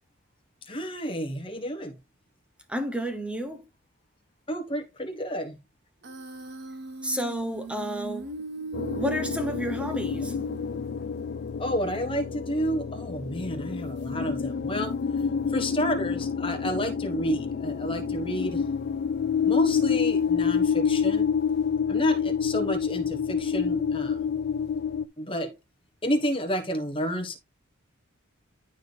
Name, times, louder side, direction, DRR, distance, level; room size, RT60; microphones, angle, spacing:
voice 1, 0.7-1.9 4.5-5.5 11.6-14.9 15.5-18.6 19.4-21.3 21.9-24.3 25.2-25.5 26.0-27.4, equal, 25° left, 1.3 m, -30 dB
voice 2, 2.7-3.6 7.0-8.3 9.0-10.4, equal, 5° right, 0.9 m, -31 dB
Human voice, 6.0-11.0, right 2 dB, 50° right, 1.0 m, -38 dB
sound 1, 8.7-25.0, left 6 dB, 50° left, 0.3 m, -28 dB
11.5 x 4.1 x 3.4 m
head